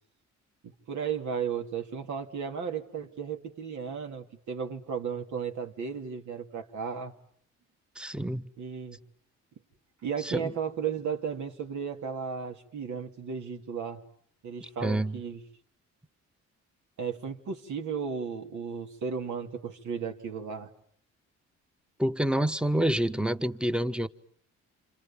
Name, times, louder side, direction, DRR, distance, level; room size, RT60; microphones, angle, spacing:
voice 1, 0.6-7.1 8.6-9.0 10.0-14.0 14.4-15.4 17.0-20.7, right 6 dB, 70° right, 3.1 m, -34 dB
voice 2, 7.9-8.5 10.2-10.5 14.8-15.2 22.0-24.1, right 1 dB, 5° right, 1.2 m, -28 dB
30.0 x 27.5 x 7.3 m
cardioid pair, 90°, 30 cm